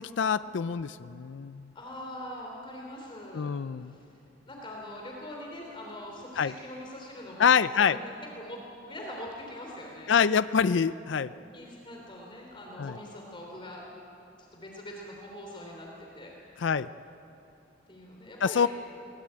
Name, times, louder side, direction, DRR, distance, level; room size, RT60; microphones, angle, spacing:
voice 1, 0.0-1.7 3.3-3.9 6.4-6.5 7.4-8.0 10.1-11.3 12.8-13.0 16.6-16.9 18.4-18.7, left 6 dB, 70° left, 14 dB, 0.4 m, -25 dB
voice 2, 1.7-3.5 3.9-4.0 4.4-7.5 7.7-10.1 11.5-13.8 14.4-16.3 17.9-18.6, left 1 dB, 30° left, -1 dB, 3.4 m, -42 dB
22.0 x 20.5 x 8.9 m, 2.7 s
head